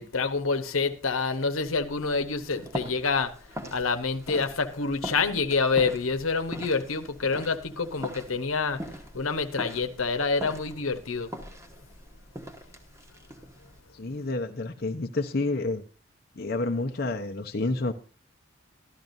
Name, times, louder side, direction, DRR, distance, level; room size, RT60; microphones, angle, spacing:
voice 1, 0.0-3.3 3.7-8.8 9.1-11.3, left 4 dB, 85° left, 1.1 m, -27 dB
sound 1, 1.6-13.8, equal, 15° right, 1.2 m, -42 dB
voice 2, 13.9-15.8 16.4-17.9, left 2 dB, 50° left, 0.8 m, -29 dB
13.5 x 12.0 x 2.6 m
head